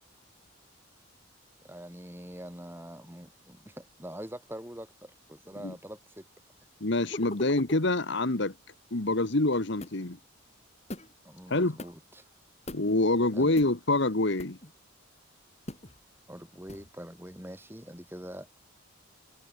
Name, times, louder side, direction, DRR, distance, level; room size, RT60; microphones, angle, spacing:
voice 1, 1.6-6.3 11.2-12.2 13.3-13.5 16.3-18.6, equal, 10° right, 5.1 m, -44 dB
voice 2, 6.8-8.5 8.9-10.2 11.5-11.8 12.7-14.6, left 2 dB, 55° left, 1.4 m, -26 dB
sound 1, 7.1-7.9 9.8-10.1 10.9-11.1 11.8-11.9 12.7-13.0 13.6-13.7 14.4-14.7 15.7-16.0 16.7-16.9, left 1 dB, 30° left, 3.6 m, -41 dB
head